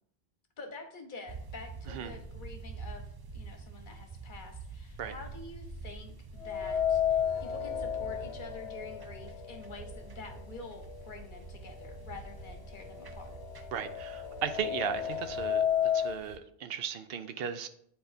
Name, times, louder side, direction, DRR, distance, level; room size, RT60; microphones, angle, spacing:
voice 1, 0.6-13.4, left 3 dB, 50° left, 4 dB, 1.1 m, -47 dB
sound 1, 1.3-16.4, right 4 dB, 35° right, 0.3 m, -46 dB
sound 2, 6.4-10.5 10.8-10.9 11.9-12.0 12.4-16.2, left 9 dB, 85° left, 1.0 m, -32 dB
voice 2, 13.7-17.7, right 7 dB, 70° right, 9 dB, 0.8 m, -36 dB
9.9 x 4.2 x 2.6 m, 0.68 s
omnidirectional pair, 1.1 m